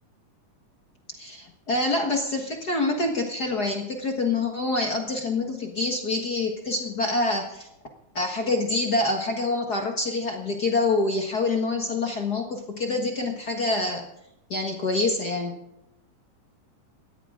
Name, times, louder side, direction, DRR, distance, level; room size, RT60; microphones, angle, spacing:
voice 1, 1.2-7.7 8.1-14.1 14.5-15.6, left 2 dB, 45° left, 3 dB, 1.5 m, -26 dB
19.0 x 14.0 x 3.7 m, 0.85 s
omnidirectional pair, 3.6 m